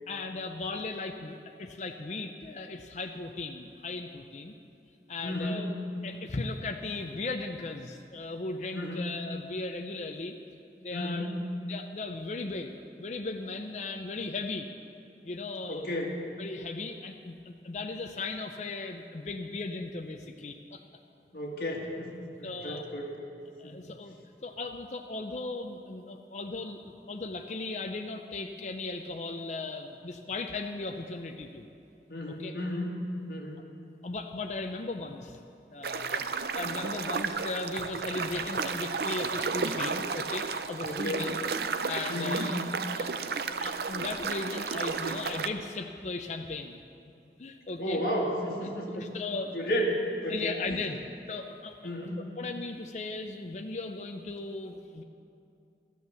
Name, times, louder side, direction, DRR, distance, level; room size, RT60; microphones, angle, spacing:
voice 1, 0.1-4.5 5.1-5.7 6.0-10.4 10.8-11.3 11.7-14.7 15.2-16.0 16.4-20.8 22.4-22.9 23.6-24.1 24.4-31.7 32.3-32.6 34.0-35.4 35.7-41.4 41.9-42.6 42.9-43.2 43.5-46.8 47.4-48.0 48.6-49.7 50.3-51.0 51.3-51.8 52.2-55.0, left 3 dB, 40° left, 4 dB, 0.5 m, -37 dB
voice 2, 5.2-5.7 8.7-9.0 10.9-11.3 15.7-16.2 21.3-23.1 23.6-23.8 32.1-32.9 33.3-33.6 40.8-41.3 42.1-42.5 47.8-49.1 49.5-50.8 51.8-52.3, equal, 55° left, -2 dB, 2.1 m, -33 dB
sound 1, 35.8-45.5, right 5 dB, 60° right, 0.5 m, -33 dB
13.5 x 9.3 x 6.9 m, 2.6 s
head